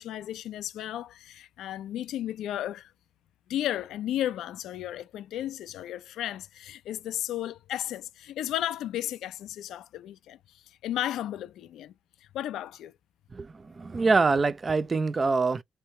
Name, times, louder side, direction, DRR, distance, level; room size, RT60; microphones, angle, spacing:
voice 1, 0.0-2.9 3.5-11.9 12.2-12.9, left 12 dB, 80° left, 0.5 m, -34 dB
voice 2, 13.3-15.6, right 4 dB, 30° right, 0.4 m, -25 dB
3.3 x 2.8 x 4.2 m
cardioid pair, 90°, 0 cm